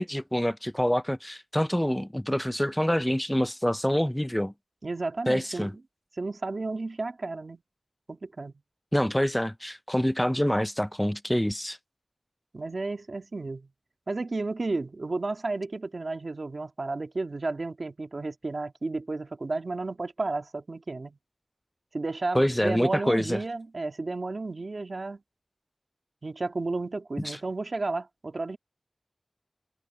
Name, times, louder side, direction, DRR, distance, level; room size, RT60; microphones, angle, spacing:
voice 1, 0.0-4.5 5.3-5.7 8.9-11.8 22.3-23.4 27.2-27.4, equal, 10° left, 0.4 m, -26 dB
voice 2, 4.8-5.7 6.2-7.6 8.1-8.5 12.5-13.7 14.1-21.2 21.9-25.2 26.2-28.6, right 3 dB, 70° right, 1.7 m, -32 dB
wide cardioid pair, 55°, 0 cm